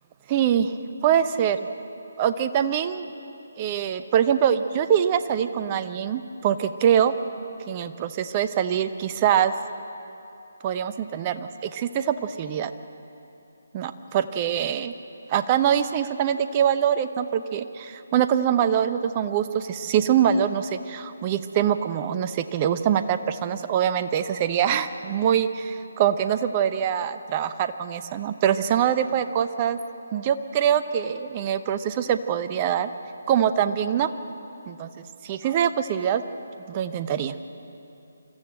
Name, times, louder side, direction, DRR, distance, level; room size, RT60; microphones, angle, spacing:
voice 1, 0.3-0.7 1.0-1.6 2.2-3.1 3.6-7.1 7.7-9.5 10.6-12.7 13.7-14.9 15.3-29.8 30.1-32.9 33.3-34.1 34.7-34.9 35.2-36.2 36.7-37.3, right 9 dB, 25° right, 11 dB, 0.8 m, -24 dB
25.0 x 14.5 x 7.7 m, 2.9 s
figure-of-eight pair, 150°, 0 cm